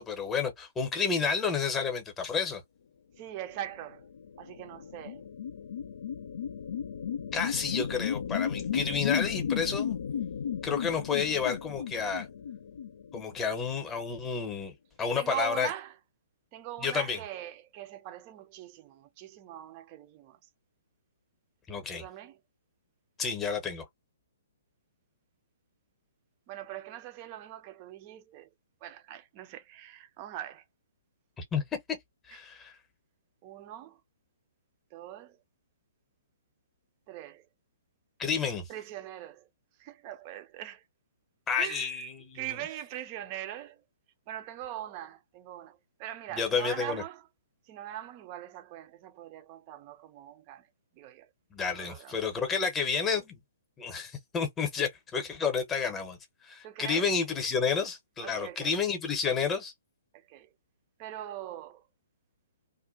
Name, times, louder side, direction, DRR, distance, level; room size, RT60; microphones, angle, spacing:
voice 1, 0.0-2.6 7.3-10.0 10.6-12.3 13.1-15.7 16.8-17.2 21.7-22.0 23.2-23.8 31.4-31.6 32.3-32.7 38.2-38.7 41.5-42.6 46.3-47.0 51.5-53.4 53.8-56.2 56.4-59.7, left 6 dB, 15° left, 0.8 m, -30 dB
voice 2, 3.2-4.1 4.4-5.3 15.2-15.9 16.5-20.4 21.9-22.4 26.5-28.5 28.8-30.6 33.4-34.0 34.9-35.4 37.1-37.5 38.7-39.5 39.8-40.8 41.6-42.0 42.3-43.8 44.3-47.3 47.7-50.7 51.0-51.3 51.6-52.2 56.6-57.1 58.2-58.8 60.1-60.5 61.0-61.8, right 12 dB, 30° right, 0.5 m, -41 dB
sound 1, 3.9-13.7, left 8 dB, 60° left, 0.4 m, -34 dB
2.5 x 2.1 x 2.4 m
figure-of-eight pair, 125°, 0 cm